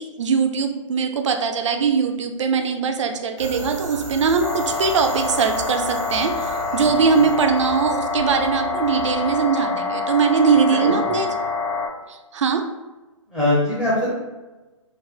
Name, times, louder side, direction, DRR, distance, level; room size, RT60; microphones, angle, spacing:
voice 1, 0.0-11.3 12.1-12.7, right 5 dB, 60° right, 6 dB, 0.4 m, -21 dB
sound 1, 3.4-9.4, right 1 dB, 80° right, 1.0 m, -36 dB
sound 2, 4.4-11.9, left 4 dB, 40° left, 0.7 m, -26 dB
voice 2, 10.8-11.2 13.3-14.1, left 1 dB, 10° left, -7 dB, 0.4 m, -22 dB
3.4 x 2.1 x 2.3 m, 1.2 s
figure-of-eight pair, 130°, 17 cm